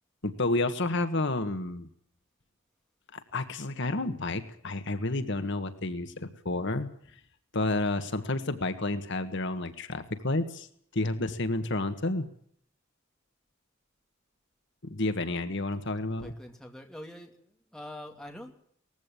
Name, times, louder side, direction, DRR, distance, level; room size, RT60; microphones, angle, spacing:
voice 1, 0.2-1.9 3.1-6.9 7.5-10.7 10.9-12.3 14.8-16.3, left 2 dB, 60° left, 9 dB, 1.6 m, -30 dB
voice 2, 16.2-18.5, left 1 dB, 5° left, 2 dB, 2.7 m, -44 dB
19.5 x 15.5 x 9.0 m, 0.63 s
head